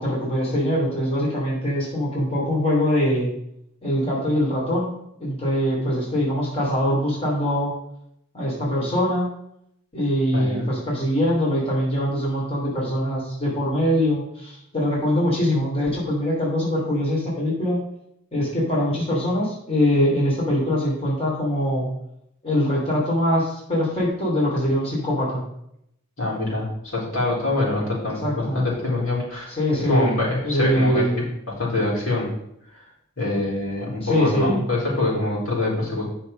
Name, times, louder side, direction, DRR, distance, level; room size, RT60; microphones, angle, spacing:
voice 1, 0.0-3.3 3.8-4.9 5.2-7.7 8.3-9.3 9.9-17.8 18.3-21.9 22.4-25.4 28.2-28.6 29.5-30.1 30.4-31.3 34.0-34.6, equal, 30° left, -5 dB, 3.1 m, -23 dB
voice 2, 10.3-10.7 26.2-31.0 31.6-32.3 33.2-36.0, left 2 dB, 70° left, -4 dB, 3.9 m, -25 dB
9.2 x 5.8 x 5.4 m, 0.76 s
head